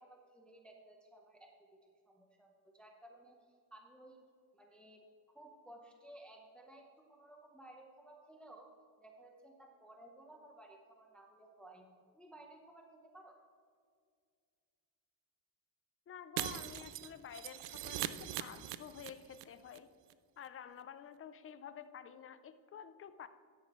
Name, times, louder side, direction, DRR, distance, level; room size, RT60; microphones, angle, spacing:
voice 1, 0.0-1.8 2.1-3.4 3.7-4.2 4.5-5.1 5.3-8.7 9.0-13.3, right 1 dB, ahead, 1 dB, 0.8 m, -57 dB
voice 2, 16.1-19.9 20.4-23.3, left 8 dB, 30° left, 12 dB, 0.4 m, -50 dB
Shatter, 16.4-19.4 19.7-19.8 20.1-20.2, right 13 dB, 85° right, 0.7 m, -41 dB
13.0 x 10.5 x 3.0 m, 2.1 s
cardioid pair, 155°, 49 cm